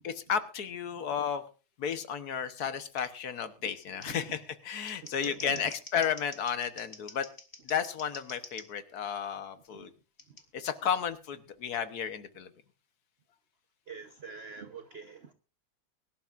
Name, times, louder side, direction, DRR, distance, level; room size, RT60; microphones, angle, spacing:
voice 1, 0.0-1.4 1.8-7.3 7.6-9.9 10.5-12.5, left 8 dB, 55° left, 1.4 m, -33 dB
Scissors, 3.0-3.1 4.0-4.1 4.7-8.7 10.2-10.4, left 3 dB, 30° left, 1.8 m, -47 dB
voice 2, 5.0-5.7 9.7-9.9 13.9-15.3, right 5 dB, 45° right, 0.9 m, -45 dB
23.5 x 12.0 x 2.5 m
omnidirectional pair, 2.2 m